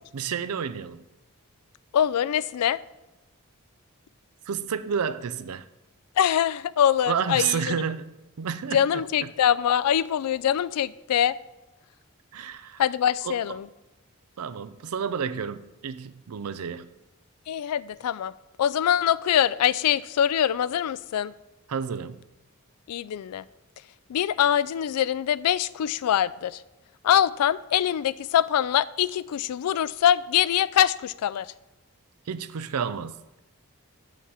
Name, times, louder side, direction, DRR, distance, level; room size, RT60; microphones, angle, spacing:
voice 1, 0.1-1.0 4.5-5.7 7.1-9.0 12.3-12.8 13.2-13.6 14.4-16.9 21.7-22.2 32.3-33.2, right 7 dB, 80° right, 0.5 m, -30 dB
voice 2, 1.9-2.8 6.2-7.8 8.7-11.4 12.8-13.7 17.5-18.3 18.6-21.3 22.9-23.4 24.1-26.6 27.0-31.5, left 10 dB, 90° left, 0.3 m, -23 dB
8.3 x 7.2 x 4.8 m
head